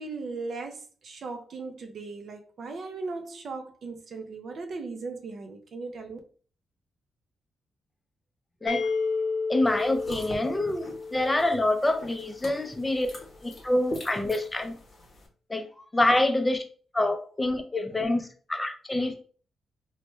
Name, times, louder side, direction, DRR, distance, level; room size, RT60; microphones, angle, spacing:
voice 1, 0.0-6.2, right 3 dB, 55° right, 0.4 m, -38 dB
sound 1, 8.7-12.4, left 4 dB, 75° left, 0.5 m, -32 dB
voice 2, 9.5-13.1 13.4-14.7 15.5-16.6 16.9-19.2, left 1 dB, 15° left, 0.5 m, -26 dB
sound 2, 9.6-15.3, left 1 dB, 40° left, 0.9 m, -44 dB
3.2 x 2.1 x 3.0 m
cardioid pair, 125°, 0 cm